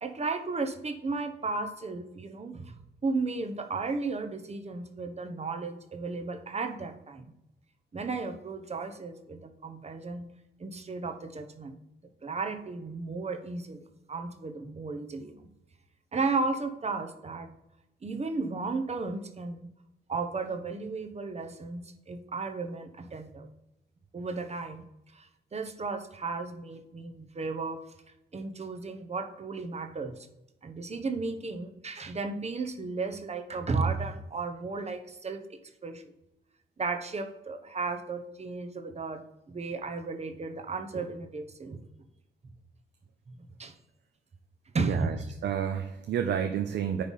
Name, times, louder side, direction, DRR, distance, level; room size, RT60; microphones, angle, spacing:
voice 1, 0.0-2.8 3.0-7.3 7.9-10.3 10.6-11.8 12.2-15.5 16.1-17.5 18.0-19.7 20.1-23.5 24.1-24.8 25.1-27.8 28.3-30.3 30.6-36.1 36.8-39.2 39.5-41.8 43.3-43.7 44.7-45.1, right 4 dB, 35° right, 7 dB, 1.0 m, -34 dB
voice 2, 44.8-45.1 45.4-47.0, right 8 dB, 75° right, 6 dB, 0.7 m, -30 dB
9.7 x 3.4 x 5.4 m, 0.91 s
cardioid pair, 75°, 19 cm